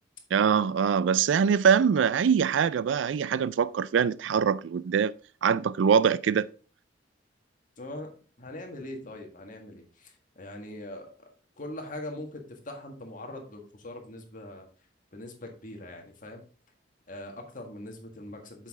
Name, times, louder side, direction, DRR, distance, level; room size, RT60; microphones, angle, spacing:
voice 1, 0.3-5.1 5.4-6.5, right 7 dB, 80° right, 0.4 m, -23 dB
voice 2, 7.8-8.1 8.4-11.1 11.6-14.7 15.1-16.4 17.1-18.7, left 1 dB, 45° left, 1.7 m, -41 dB
7.3 x 5.7 x 3.6 m
head